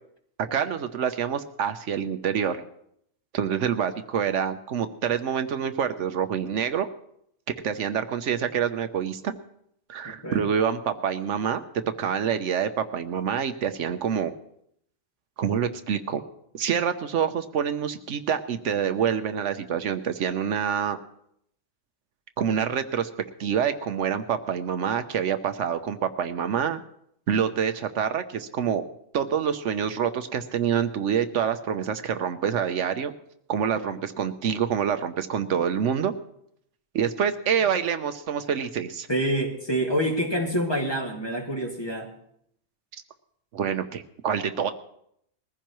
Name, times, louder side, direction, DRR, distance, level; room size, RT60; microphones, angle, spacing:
voice 1, 0.4-2.6 3.3-6.9 7.6-9.3 9.9-11.6 12.0-14.3 15.4-16.2 16.5-21.0 22.4-23.1 23.4-26.8 27.3-28.8 29.1-33.1 33.5-36.1 36.9-39.1 43.5-44.7, right 8 dB, 80° right, 9 dB, 1.1 m, -26 dB
voice 2, 10.0-10.5 33.8-34.0 39.1-42.1, right 1 dB, 20° left, 0 dB, 2.1 m, -27 dB
21.0 x 15.0 x 3.1 m, 0.72 s
omnidirectional pair, 1.2 m